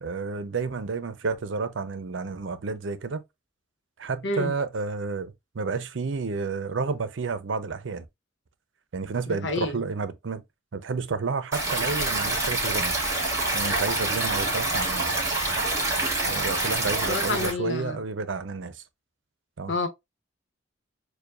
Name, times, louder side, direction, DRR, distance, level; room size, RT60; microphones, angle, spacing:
voice 1, 0.0-3.2 4.0-8.1 8.9-10.4 10.7-12.9 13.5-15.2 16.3-18.8 19.6-19.7, right 4 dB, 85° right, 0.6 m, -30 dB
voice 2, 9.3-9.8 17.1-18.0 19.7-19.9, left 3 dB, 75° left, 1.0 m, -29 dB
Stream, 11.5-17.5, right 2 dB, 15° right, 1.8 m, -26 dB
6.8 x 2.3 x 2.4 m
head